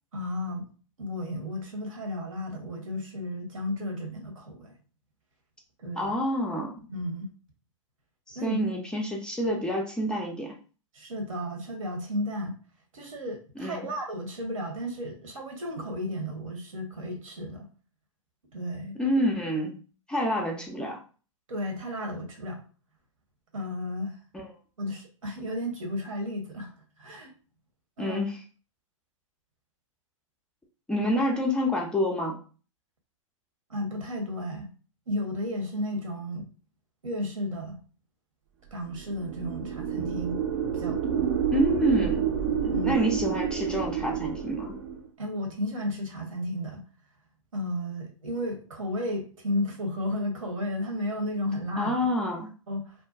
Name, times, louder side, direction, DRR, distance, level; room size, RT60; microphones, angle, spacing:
voice 1, 0.1-0.7 1.0-4.7 5.8-6.2 6.9-7.3 8.3-8.7 9.4-9.6 10.9-12.6 12.9-17.7 18.5-18.9 21.5-22.6 23.5-24.2 24.8-26.7 27.0-27.3 28.0-28.2 33.7-34.7 35.1-36.5 37.0-37.8 38.7-40.4 40.7-41.3 42.7-42.9 45.2-46.8 47.5-52.0 52.7-52.9, left 1 dB, 80° right, 2 dB, 0.9 m, -33 dB
voice 2, 6.0-6.7 8.3-10.5 13.6-13.8 19.0-19.8 20.1-21.0 24.3-24.5 28.0-28.4 30.9-32.4 41.5-42.3 42.6-44.7 51.8-52.5, equal, 5° left, -1 dB, 0.3 m, -28 dB
sound 1, 38.9-45.1, right 8 dB, 50° right, 0.5 m, -29 dB
2.6 x 2.1 x 2.4 m, 0.37 s
hypercardioid pair, 115°, 17 cm